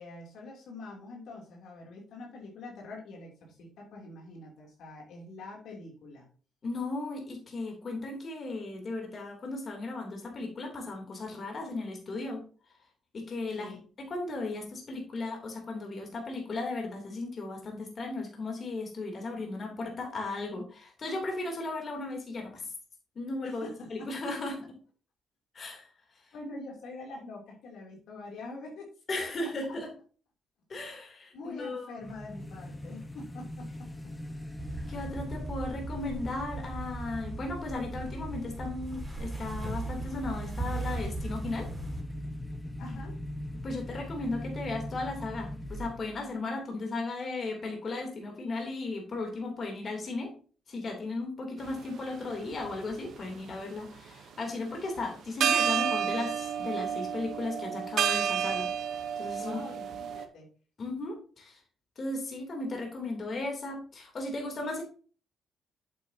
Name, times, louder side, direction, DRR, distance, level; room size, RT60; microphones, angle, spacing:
voice 1, 0.0-6.3 13.5-13.8 23.4-24.1 26.3-28.9 29.2-29.3 29.7-29.8 31.3-33.9 34.3-34.4 42.8-43.1 59.4-60.5, left 2 dB, 75° left, -1 dB, 2.9 m, -45 dB
voice 2, 6.6-12.4 13.1-22.6 23.1-24.6 25.5-25.9 29.1-29.9 30.7-31.9 34.9-41.7 43.6-50.3 50.7-58.7 59.2-59.6 60.8-61.6 62.0-64.8, left 2 dB, 45° left, 1 dB, 3.1 m, -36 dB
sound 1, 32.0-46.3, left 1 dB, 10° left, 1.1 m, -41 dB
sound 2, 34.6-42.0, right 2 dB, 15° right, 4.2 m, -38 dB
sound 3, 51.7-51.8 52.5-53.5 55.0-55.1 55.4-60.3, right 8 dB, 65° right, 0.9 m, -30 dB
8.1 x 8.0 x 2.8 m, 0.39 s
cardioid pair, 90°, 0 cm